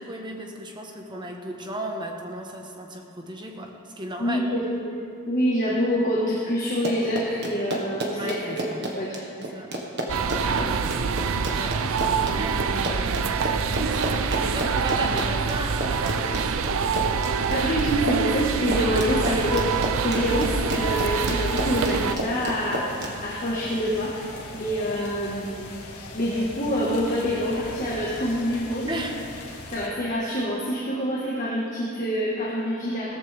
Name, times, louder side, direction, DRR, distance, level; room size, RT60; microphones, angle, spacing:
voice 1, 0.0-4.5 5.7-5.8 8.1-8.9 9.3-9.7 10.1-16.8 19.2-19.5 21.1-21.2 24.9-25.1 28.9-29.2, right 1 dB, 20° right, 1 dB, 1.2 m, -36 dB
voice 2, 4.2-5.0 5.3-8.6 8.9-9.2 10.6-10.7 17.5-19.7 20.0-25.7 26.1-28.9 29.7-33.2, equal, 35° left, -5 dB, 1.6 m, -26 dB
Run, 6.7-23.1, right 1 dB, 50° right, 1.5 m, -31 dB
sound 1, 10.1-22.2, right 5 dB, 65° right, 0.5 m, -26 dB
sound 2, 19.0-29.9, left 2 dB, 90° left, 1.7 m, -40 dB
17.0 x 14.0 x 3.5 m, 2.4 s
head